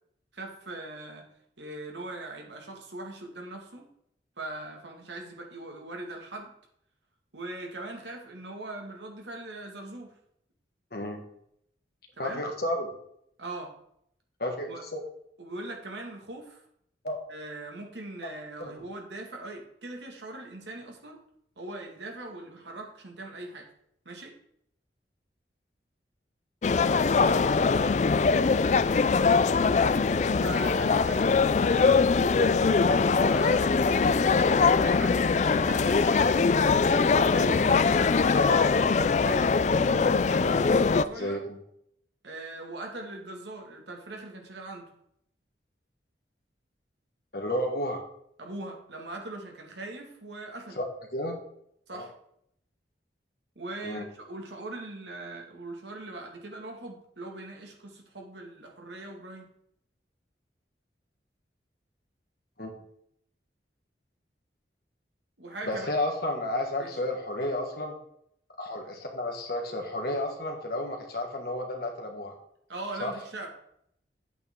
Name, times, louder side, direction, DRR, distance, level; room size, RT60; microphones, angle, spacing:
voice 1, 0.3-1.3 1.6-3.9 4.4-6.5 7.3-10.1 12.2-12.4 13.4-13.7 14.7-14.8 15.4-16.6 17.3-21.2 21.6-23.7 24.1-24.3 30.4-31.3 31.7-32.5 33.1-36.3 37.3-38.1 39.2-41.4 42.2-44.9 48.4-50.8 51.9-52.1 53.6-59.5 65.4-65.9 66.8-66.9 72.7-73.5, right 2 dB, 80° right, 1 dB, 2.0 m, -40 dB
voice 2, 10.9-11.2 12.2-12.9 14.4-15.0 17.0-17.2 18.2-18.3 18.6-18.7 38.3-38.6 41.1-41.6 47.3-48.0 50.8-50.9 51.1-51.4 51.9-52.1 53.8-54.0 62.6-62.7 65.6-68.0 68.6-72.4 73.0-73.1, left 1 dB, 60° left, 2 dB, 1.8 m, -31 dB
sound 1, 26.6-41.1, left 4 dB, 40° left, 0.3 m, -22 dB
9.1 x 8.3 x 3.7 m, 0.72 s
head